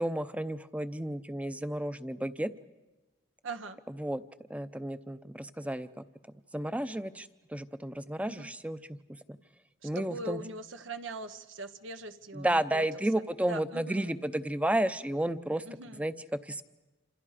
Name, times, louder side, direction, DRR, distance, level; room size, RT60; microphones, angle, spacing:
voice 1, 0.0-2.5 3.9-4.2 4.5-5.9 6.5-9.0 9.8-10.4 12.3-15.6 16.0-16.1 16.4-16.7, right 1 dB, 5° right, 12 dB, 0.7 m, -32 dB
voice 2, 3.4-3.8 8.3-8.5 9.8-12.8 13.5-14.1 15.6-16.0, right 2 dB, 85° right, 8 dB, 1.2 m, -41 dB
28.0 x 27.0 x 5.1 m, 1.2 s
head